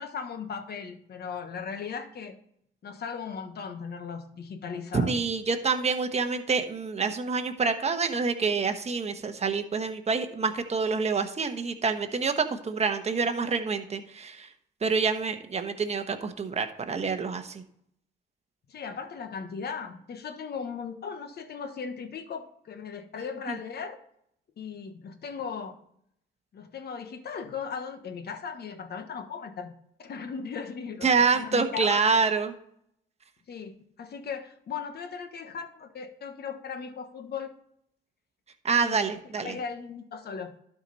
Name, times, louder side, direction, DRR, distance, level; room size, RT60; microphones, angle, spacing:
voice 1, 0.0-2.4 2.8-5.1 18.7-24.0 24.6-25.8 26.5-32.3 33.5-37.5 38.8-39.1 39.4-40.5, left 6 dB, 55° left, 8 dB, 1.2 m, -37 dB
voice 2, 4.9-14.5 14.8-17.6 23.5-23.6 31.0-32.5 38.6-39.6, right 5 dB, 35° right, 7 dB, 1.1 m, -27 dB
12.0 x 4.9 x 4.0 m, 0.71 s
cardioid pair, 90°, 20 cm